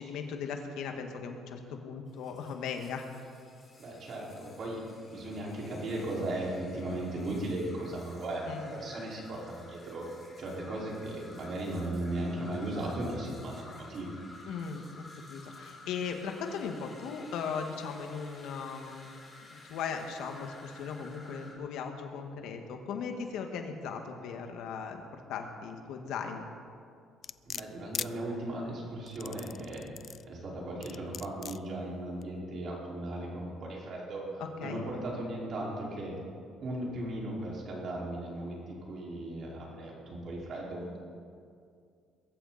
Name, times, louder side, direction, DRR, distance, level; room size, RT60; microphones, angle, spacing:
voice 1, 0.0-3.1 8.5-8.8 14.5-14.8 15.3-19.1 19.5-26.5 34.4-34.8, left 6 dB, 75° left, 4 dB, 1.9 m, -38 dB
sound 1, 2.1-21.5, left 2 dB, 20° left, 4.8 m, -53 dB
voice 2, 3.8-4.8 5.1-10.1 10.4-14.1 27.5-36.2 36.6-41.0, right 1 dB, 50° right, -4 dB, 5.1 m, -37 dB
sound 2, 27.2-28.1 29.1-30.2 30.8-31.6 32.2-32.3, left 8 dB, 45° left, 0.4 m, -39 dB
22.0 x 14.0 x 4.3 m, 2.3 s
cardioid pair, 125°, 0 cm